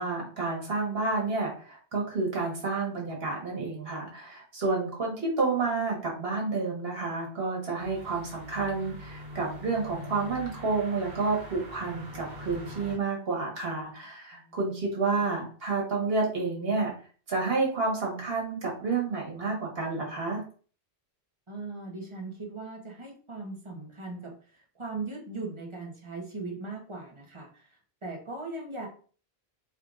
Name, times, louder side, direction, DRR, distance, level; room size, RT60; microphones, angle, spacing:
voice 1, 0.0-16.9 17.3-20.4, right 3 dB, 65° right, -2 dB, 1.7 m, -30 dB
sound 1, 7.8-13.0, left 1 dB, 45° right, 1.2 m, -43 dB
voice 2, 14.3-14.7 21.5-28.9, right 3 dB, 30° right, 0 dB, 0.9 m, -39 dB
4.5 x 3.4 x 2.5 m, 0.41 s
omnidirectional pair, 1.1 m